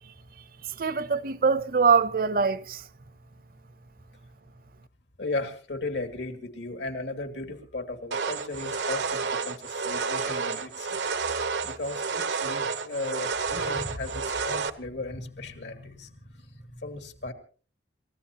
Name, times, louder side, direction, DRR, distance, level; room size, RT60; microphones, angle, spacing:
voice 1, 0.7-2.8, right 5 dB, 55° right, 0.7 m, -23 dB
voice 2, 5.2-11.0 11.6-17.3, left 2 dB, 80° left, 2.3 m, -36 dB
sound 1, 8.1-14.7, right 5 dB, 85° right, 0.9 m, -30 dB
28.5 x 15.0 x 2.9 m
head